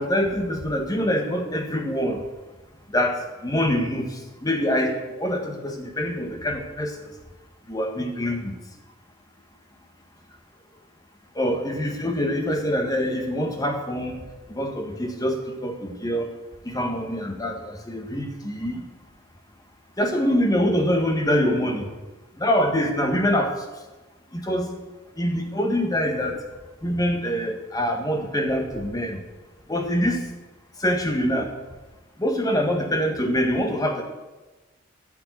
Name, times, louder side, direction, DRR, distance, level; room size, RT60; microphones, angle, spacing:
voice 1, 0.0-2.2 2.9-7.0 7.7-8.5 11.4-14.2 14.5-16.3 16.7-18.8 20.0-21.9 22.4-23.5 24.3-24.7 25.2-26.4 26.8-29.2 29.7-30.2 30.8-31.5 32.2-34.0, equal, 20° left, 4 dB, 1.6 m, -25 dB
13.0 x 5.8 x 9.5 m, 1.2 s
head